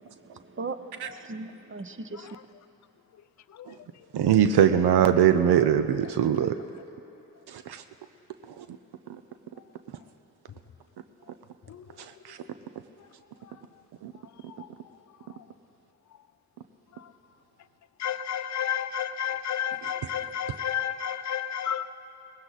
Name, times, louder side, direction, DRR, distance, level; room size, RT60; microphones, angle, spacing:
voice 1, 0.0-0.8 1.1-2.4, right 3 dB, 30° right, 10 dB, 0.8 m, -38 dB
voice 2, 4.1-6.6 7.5-7.8 8.6-8.7 12.3-12.4 14.0-14.1, right 9 dB, 80° right, 9 dB, 0.6 m, -21 dB
voice 3, 18.0-21.9, left 9 dB, 45° left, 10 dB, 0.6 m, -31 dB
18.5 x 16.5 x 4.0 m, 2.9 s
supercardioid pair, 40°, 38 cm